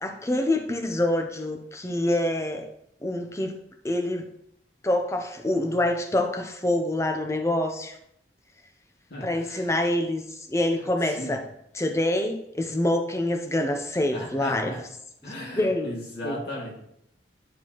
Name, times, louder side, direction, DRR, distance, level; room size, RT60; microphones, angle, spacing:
voice 1, 0.0-2.7 3.0-3.6 3.8-4.3 4.8-8.0 9.2-11.4 11.7-14.7 15.6-15.9 16.2-16.4, left 1 dB, 15° left, 4 dB, 0.6 m, -26 dB
voice 2, 9.1-9.7 10.8-11.4 14.1-14.8 15.2-16.8, left 1 dB, 60° left, -3 dB, 2.3 m, -36 dB
10.5 x 4.4 x 3.0 m, 0.74 s
head